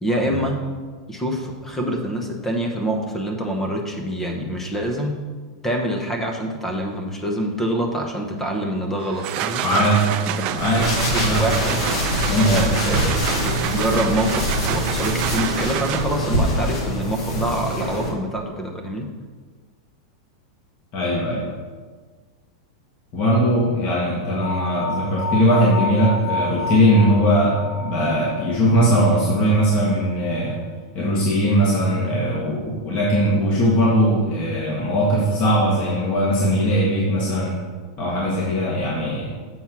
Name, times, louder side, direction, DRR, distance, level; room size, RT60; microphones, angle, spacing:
voice 1, 0.0-0.6 1.1-5.1 5.6-9.6 10.3-10.5 11.1-11.8 12.5-19.1, right 1 dB, 10° left, 2 dB, 0.9 m, -26 dB
sound 1, 9.0-16.4, right 11 dB, 40° right, 0.4 m, -28 dB
voice 2, 9.6-10.0 10.5-10.9 11.2-11.5 12.3-12.8 20.9-21.4 23.1-30.6 30.9-37.6 38.0-39.3, equal, 35° left, -5 dB, 1.7 m, -19 dB
sound 2, 10.6-18.1, equal, 60° left, 1.9 m, -24 dB
sound 3, 24.4-29.5, left 2 dB, 80° left, 0.6 m, -30 dB
7.2 x 4.4 x 6.0 m, 1.4 s
supercardioid pair, 150°, 3 cm